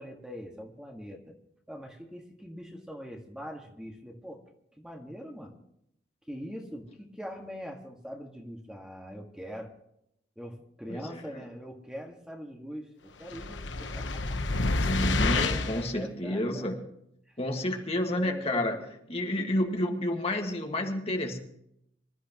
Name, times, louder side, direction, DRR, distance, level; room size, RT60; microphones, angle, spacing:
voice 1, 0.0-1.4 1.7-4.4 4.8-5.5 6.3-9.7 10.4-14.4 14.8-16.7 18.1-18.9, equal, 5° right, 1 dB, 1.7 m, -42 dB
voice 2, 10.9-11.2 14.7-16.8 17.4-18.8 19.1-21.4, left 1 dB, 35° left, 2 dB, 1.8 m, -30 dB
sound 1, 13.3-15.9, left 3 dB, 85° left, 1.1 m, -28 dB
25.5 x 13.5 x 3.0 m, 0.75 s
head